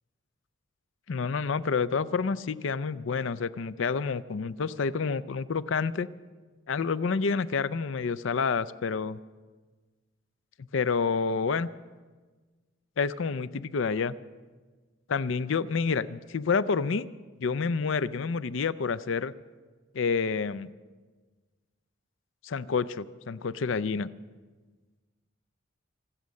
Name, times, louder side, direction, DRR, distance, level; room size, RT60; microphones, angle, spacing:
voice 1, 1.1-6.1 6.7-9.2 10.6-11.7 13.0-14.1 15.1-17.1 17.4-19.3 19.9-20.7 22.4-24.1, left 5 dB, 70° left, 16 dB, 0.5 m, -28 dB
24.5 x 8.4 x 6.4 m, 1.4 s
head